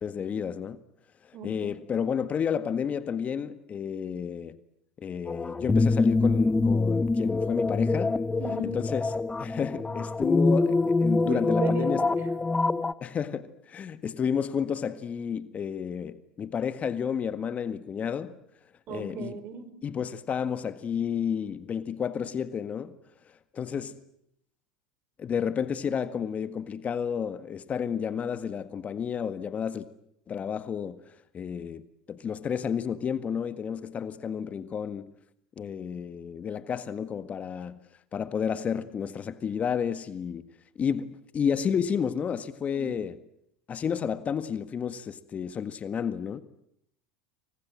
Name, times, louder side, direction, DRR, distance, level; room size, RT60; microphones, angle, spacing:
voice 1, 0.0-0.8 1.4-4.6 5.0-8.2 8.6-9.1 9.4-12.0 13.0-18.4 18.9-19.4 19.8-23.0 23.5-24.0 25.2-29.8 30.3-31.0 31.3-35.1 35.6-37.8 38.1-40.4 40.8-43.2 43.7-46.4, left 7 dB, 30° left, 1.7 m, -31 dB
voice 2, 1.3-1.7 8.4-8.8 11.2-12.3 18.9-19.7 42.7-42.9, right 5 dB, 45° right, 4.8 m, -36 dB
sound 1, 5.3-12.9, left 3 dB, 15° left, 1.1 m, -25 dB
29.0 x 24.5 x 7.7 m
hypercardioid pair, 95°, 5 cm